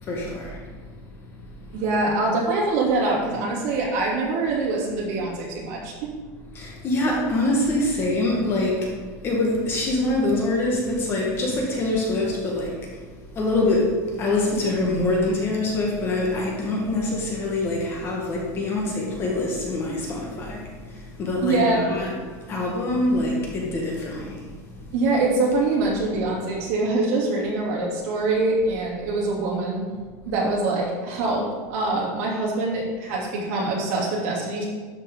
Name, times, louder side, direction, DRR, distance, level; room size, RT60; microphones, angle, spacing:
voice 1, 0.0-0.6 6.5-8.9 9.2-12.8 13.3-24.5, left 2 dB, 25° left, -2 dB, 1.3 m, -25 dB
voice 2, 1.7-6.1 21.4-21.8 24.9-29.8 30.2-31.4 31.7-34.7, right 2 dB, 55° right, -4 dB, 2.8 m, -24 dB
12.0 x 5.5 x 3.7 m, 1.5 s
supercardioid pair, 170°, 9 cm